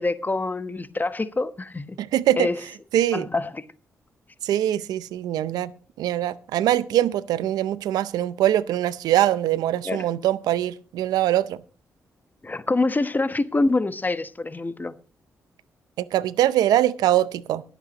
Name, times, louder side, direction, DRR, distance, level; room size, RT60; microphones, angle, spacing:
voice 1, 0.0-2.0 2.4-2.6 3.1-3.6 9.8-10.0 12.4-14.9, left 2 dB, 30° left, 1.0 m, -25 dB
voice 2, 2.0-2.5 2.9-3.3 4.4-5.7 6.0-11.6 16.0-17.6, right 13 dB, 85° right, 0.6 m, -22 dB
23.0 x 8.2 x 2.9 m
supercardioid pair, 50°, 6 cm